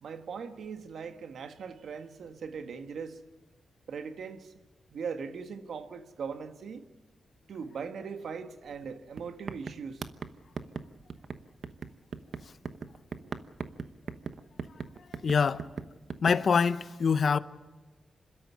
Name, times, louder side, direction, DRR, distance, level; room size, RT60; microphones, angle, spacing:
voice 1, 0.0-3.2 3.9-4.5 4.9-6.9 7.5-10.1 13.2-13.3, right 6 dB, 80° right, 1.6 m, -40 dB
sound 1, 8.7-8.9 9.2-16.4, right 5 dB, 60° right, 1.0 m, -40 dB
voice 2, 15.2-15.7 16.2-17.4, left 5 dB, 60° left, 0.8 m, -24 dB
27.0 x 13.0 x 9.6 m
cardioid pair, 75°, 0 cm